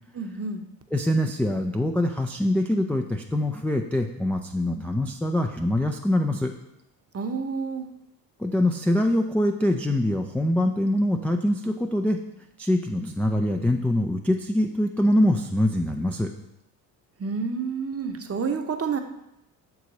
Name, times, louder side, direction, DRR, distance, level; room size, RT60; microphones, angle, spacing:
voice 1, 0.2-0.6 7.1-7.9 17.2-19.0, right 5 dB, 30° right, 6 dB, 0.8 m, -29 dB
voice 2, 0.9-6.5 8.4-12.2 12.6-16.3, left 1 dB, 5° left, 2 dB, 0.3 m, -24 dB
6.3 x 4.8 x 4.0 m, 0.83 s
hypercardioid pair, 60°, 49 cm